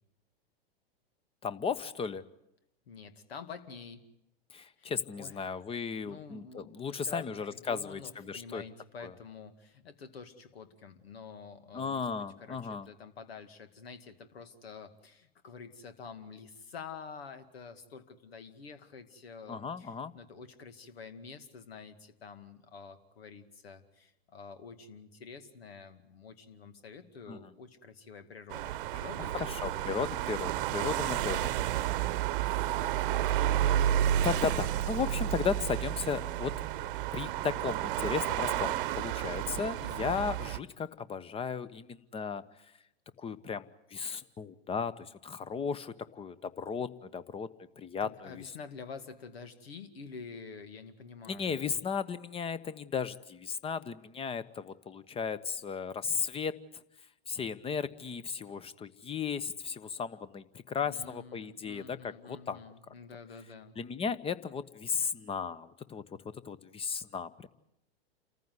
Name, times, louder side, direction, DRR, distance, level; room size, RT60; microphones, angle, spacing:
voice 1, 1.4-2.2 4.5-8.6 9.0-9.1 11.7-12.9 19.5-20.1 27.3-27.5 29.4-31.6 33.2-33.4 34.2-36.6 37.1-42.4 43.2-47.5 47.8-48.4 51.2-56.5 57.3-62.6 63.8-67.5, left 6 dB, 20° left, 16 dB, 1.0 m, -35 dB
voice 2, 2.9-4.1 4.8-4.9 5.2-5.5 6.0-29.8 32.8-33.3 39.8-40.2 48.0-51.6 60.8-63.8, left 5 dB, 75° left, 10 dB, 2.3 m, -48 dB
sound 1, 28.5-40.6, right 12 dB, 55° right, 1.0 m, -31 dB
28.5 x 14.5 x 9.6 m, 0.88 s
hypercardioid pair, 105°, 31 cm